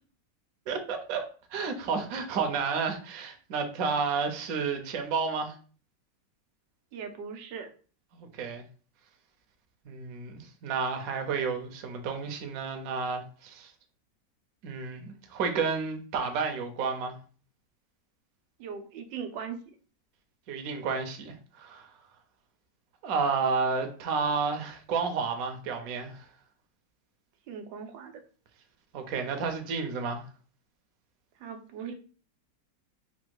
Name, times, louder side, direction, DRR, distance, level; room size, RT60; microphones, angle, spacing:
voice 1, 0.7-1.2 1.5-5.5 8.1-8.6 9.9-13.7 14.6-17.2 20.5-21.9 23.0-26.2 28.9-30.2, right 5 dB, 60° right, 5 dB, 1.0 m, -31 dB
voice 2, 6.9-7.7 18.6-19.7 27.5-28.2 31.4-31.9, right 6 dB, 90° right, 6 dB, 1.3 m, -39 dB
4.3 x 2.2 x 4.6 m, 0.39 s
omnidirectional pair, 1.9 m